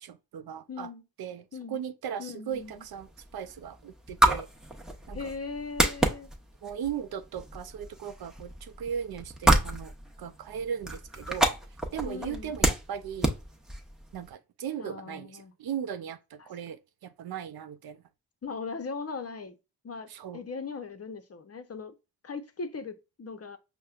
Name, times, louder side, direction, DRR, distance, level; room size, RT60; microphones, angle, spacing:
voice 1, 0.0-0.9 1.2-4.5 5.1-5.3 6.6-9.9 10.2-11.5 11.9-13.3 14.1-18.0 20.1-20.4, right 8 dB, 60° right, 0.5 m, -37 dB
voice 2, 0.7-1.0 1.5-1.8 2.2-2.8 5.1-6.3 12.0-12.5 14.8-15.5 16.4-16.5 18.4-19.6 19.8-21.9 22.2-23.6, left 4 dB, 35° left, 0.7 m, -39 dB
sound 1, 2.5-14.3, right 1 dB, ahead, 0.9 m, -30 dB
5.4 x 2.2 x 2.3 m
supercardioid pair, 50°, 42 cm